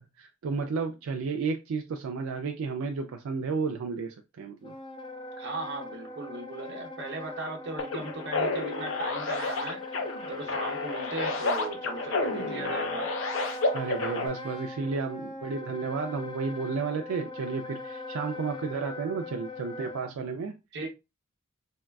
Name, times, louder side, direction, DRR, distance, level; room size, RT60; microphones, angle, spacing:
voice 1, 0.0-4.7 13.7-20.5, right 4 dB, 80° right, 0.4 m, -32 dB
Wind instrument woodwind instrument, 4.6-20.1, left 1 dB, 20° left, 0.3 m, -41 dB
voice 2, 5.4-10.0 10.3-13.1 20.7-20.9, right 2 dB, 55° right, 0.8 m, -37 dB
sound 1, 7.8-14.3, left 3 dB, 65° left, 0.6 m, -31 dB
3.5 x 2.2 x 2.3 m
head